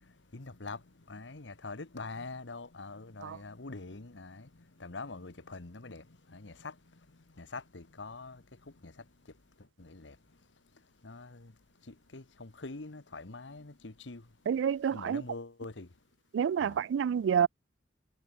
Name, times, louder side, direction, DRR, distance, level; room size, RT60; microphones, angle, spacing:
voice 1, 0.3-0.8 1.1-4.5 4.8-6.7 7.4-8.4 8.8-8.9 9.8-10.1 11.0-11.5 11.9-14.2 14.9-15.9 16.6-16.8, left 3 dB, 85° left, 1.4 m, -44 dB
voice 2, 14.5-15.2 16.3-17.5, right 8 dB, 90° right, 0.3 m, -28 dB
head